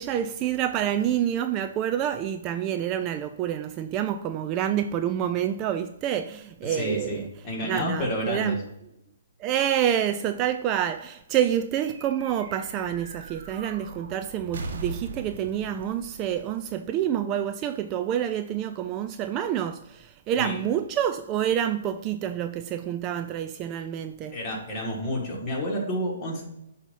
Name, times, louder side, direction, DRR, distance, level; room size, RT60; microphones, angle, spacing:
voice 1, 0.0-7.3 7.6-8.6 9.4-24.4, right 10 dB, 25° right, 0.3 m, -28 dB
voice 2, 6.7-8.6 20.4-20.6 24.3-26.4, equal, 25° left, 2.2 m, -29 dB
sound 1, 11.8-17.5, right 3 dB, 60° right, 1.1 m, -40 dB
8.0 x 2.9 x 5.4 m
hypercardioid pair, 135°, 0 cm